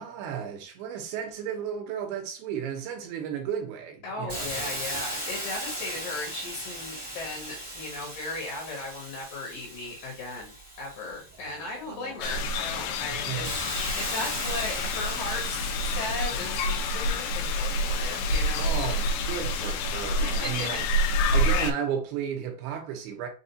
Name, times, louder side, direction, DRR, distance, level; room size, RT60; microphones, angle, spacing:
voice 1, 0.0-4.8 11.4-12.2 13.1-13.5 18.6-20.8 21.3-23.3, right 8 dB, 75° right, 2.6 m, -34 dB
voice 2, 4.0-18.7 20.2-20.8, left 2 dB, 65° left, 2.6 m, -37 dB
Hiss, 4.3-11.9 12.4-20.1, equal, 20° right, 0.6 m, -38 dB
sound 1, 12.2-21.7, left 1 dB, 90° left, 2.7 m, -28 dB
6.8 x 2.3 x 2.7 m
omnidirectional pair, 4.8 m